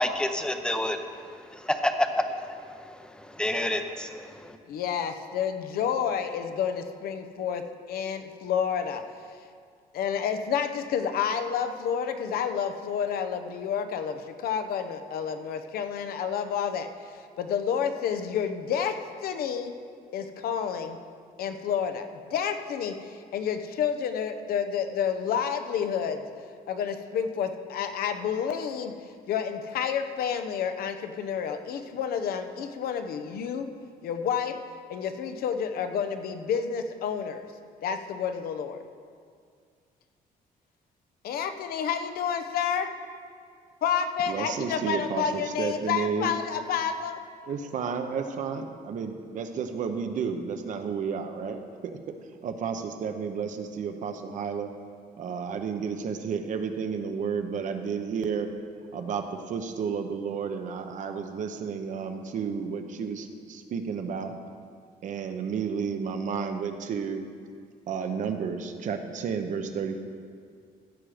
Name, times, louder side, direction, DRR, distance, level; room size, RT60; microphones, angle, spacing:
voice 1, 0.0-4.6, left 1 dB, 5° left, 7 dB, 0.6 m, -29 dB
voice 2, 4.7-7.6 7.9-9.0 9.9-19.0 19.2-19.7 20.1-21.0 21.4-26.2 26.7-28.9 29.3-33.7 34.0-34.6 34.9-37.5 37.8-38.8 41.2-42.9 43.8-47.2, left 7 dB, 75° left, 8 dB, 0.8 m, -29 dB
voice 3, 44.3-46.3 47.5-52.0 52.4-54.7 55.2-58.5 58.9-64.3 65.0-67.3 67.9-70.0, right 6 dB, 55° right, 6 dB, 0.9 m, -32 dB
15.5 x 7.6 x 5.0 m, 2.1 s
cardioid pair, 160°, 15 cm